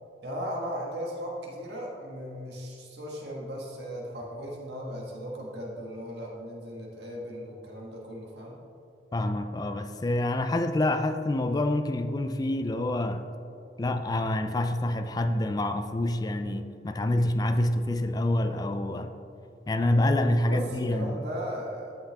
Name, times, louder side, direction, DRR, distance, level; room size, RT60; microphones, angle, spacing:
voice 1, 0.2-8.6 20.3-21.9, equal, 70° right, -2 dB, 1.5 m, -37 dB
voice 2, 9.1-13.2 13.8-19.1 19.7-21.2, left 1 dB, 20° left, 8 dB, 0.3 m, -27 dB
13.5 x 5.9 x 3.4 m, 2.5 s
head